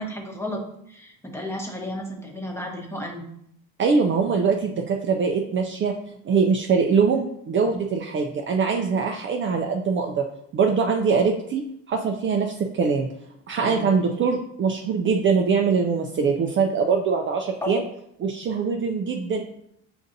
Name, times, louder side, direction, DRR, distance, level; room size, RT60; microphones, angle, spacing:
voice 1, 0.0-3.2 13.6-13.9 17.6-17.8, left 1 dB, 10° left, 0 dB, 1.0 m, -33 dB
voice 2, 3.8-5.9 6.2-10.3 10.5-11.6 11.9-13.1 13.5-17.8 18.2-19.4, right 5 dB, 35° right, 2 dB, 0.4 m, -22 dB
6.8 x 2.5 x 2.6 m, 0.73 s
supercardioid pair, 90°, 34 cm